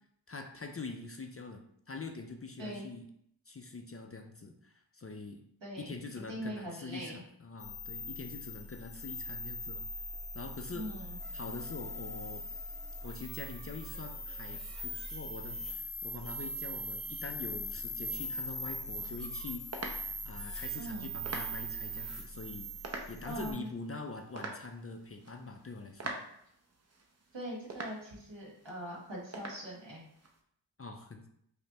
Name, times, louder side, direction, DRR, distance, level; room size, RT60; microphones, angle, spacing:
voice 1, 0.3-3.1 3.5-5.4 5.8-9.8 10.3-10.9 11.3-12.4 13.0-19.7 20.2-22.7 23.1-26.1 30.8-31.3, left 3 dB, 35° left, 4 dB, 0.4 m, -44 dB
voice 2, 5.6-5.9 6.3-7.2 10.7-11.2 20.8-21.1 23.2-23.7 27.3-30.1, equal, 70° right, -3 dB, 1.3 m, -41 dB
sound 1, 7.6-23.5, equal, ahead, 0.8 m, -41 dB
sound 2, 18.8-30.4, right 2 dB, 35° right, 0.6 m, -47 dB
5.1 x 2.2 x 2.8 m, 0.69 s
wide cardioid pair, 50°, 45 cm